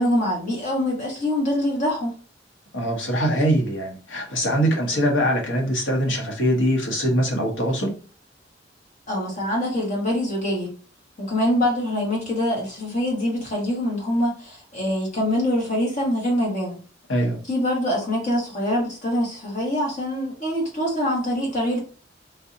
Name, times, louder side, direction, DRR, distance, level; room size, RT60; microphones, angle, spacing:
voice 1, 0.0-2.1 9.1-10.7 11.2-16.8 17.5-21.8, left 1 dB, 40° left, 1.6 m, -24 dB
voice 2, 2.7-7.9 17.1-17.4, equal, 75° left, 1.1 m, -22 dB
3.7 x 2.8 x 2.7 m
head